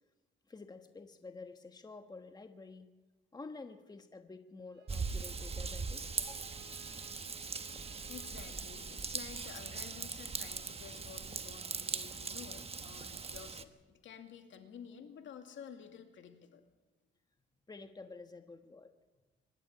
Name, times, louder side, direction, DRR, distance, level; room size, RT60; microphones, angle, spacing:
voice 1, 0.5-2.9 3.3-6.7 17.7-18.9, left 3 dB, 20° left, 7 dB, 1.4 m, -50 dB
Bowed string instrument, 4.7-9.6, right 7 dB, 60° right, 3.8 m, -63 dB
Raindrop / Vehicle horn car horn honking / Trickle dribble, 4.9-13.6, right 4 dB, 30° right, 1.2 m, -40 dB
sound 1, 7.6-12.4, left 1 dB, 45° left, 3.5 m, -67 dB
voice 2, 7.7-16.6, left 7 dB, 70° left, 5 dB, 2.4 m, -52 dB
24.0 x 12.0 x 8.9 m, 1.2 s
cardioid pair, 90°, 20 cm